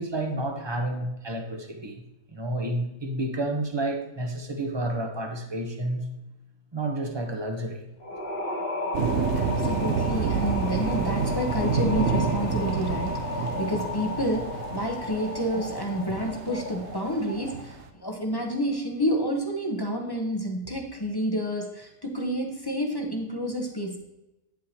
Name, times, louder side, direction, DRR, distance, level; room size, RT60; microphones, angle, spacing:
voice 1, 0.0-2.0 2.3-6.0 6.7-7.8, right 1 dB, 25° right, 4 dB, 0.6 m, -30 dB
sound 1, 8.0-17.7, left 2 dB, 40° left, 1.5 m, -33 dB
sound 2, 8.9-17.8, right 6 dB, 60° right, 0.8 m, -29 dB
voice 2, 9.4-24.0, equal, 20° left, 2 dB, 0.6 m, -29 dB
9.1 x 7.5 x 2.8 m, 0.97 s
omnidirectional pair, 1.7 m